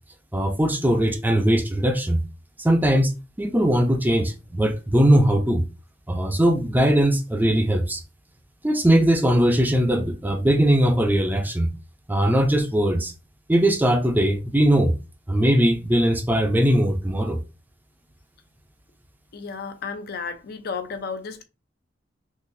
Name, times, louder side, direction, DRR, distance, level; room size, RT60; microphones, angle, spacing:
voice 1, 0.3-2.2 2.6-3.1 3.4-5.6 6.1-8.0 8.6-11.7 12.1-13.1 13.5-14.9 15.3-17.4, right 1 dB, 10° right, 0.5 m, -20 dB
voice 2, 19.3-21.4, left 5 dB, 55° left, 0.5 m, -33 dB
3.9 x 2.5 x 2.6 m
head